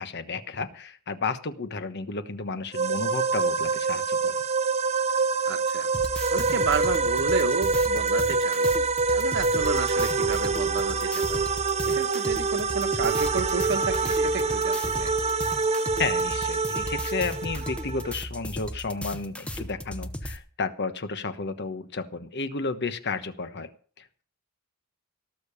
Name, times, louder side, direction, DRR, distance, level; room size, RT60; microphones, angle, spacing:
voice 1, 0.0-4.4 16.0-23.7 24.0-24.2, left 4 dB, 55° left, 10 dB, 1.2 m, -32 dB
sound 1, 2.7-18.1, right 4 dB, 30° right, 0.7 m, -26 dB
voice 2, 5.4-5.9 6.3-8.7 9.1-11.4 11.8-15.1, right 4 dB, 55° right, 9 dB, 1.3 m, -31 dB
sound 2, 5.9-20.4, equal, 5° left, 1.0 m, -36 dB
18.0 x 6.9 x 7.0 m, 0.43 s
head